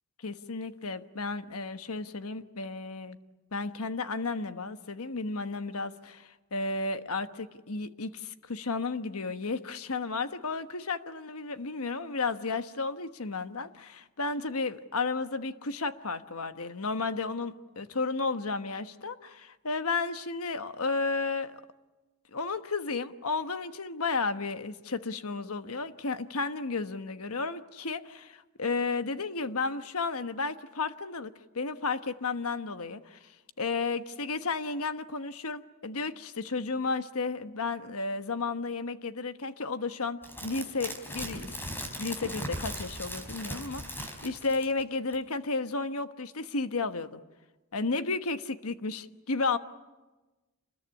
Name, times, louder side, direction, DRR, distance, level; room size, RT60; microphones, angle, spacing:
voice 1, 0.2-3.2 3.5-21.6 22.3-33.2 33.6-41.5 42.0-47.2 47.7-49.6, left 3 dB, 75° left, 10 dB, 1.2 m, -33 dB
sound 1, 40.2-44.8 45.1-45.2, equal, 10° left, 4.2 m, -38 dB
28.0 x 21.0 x 9.8 m, 1.2 s
head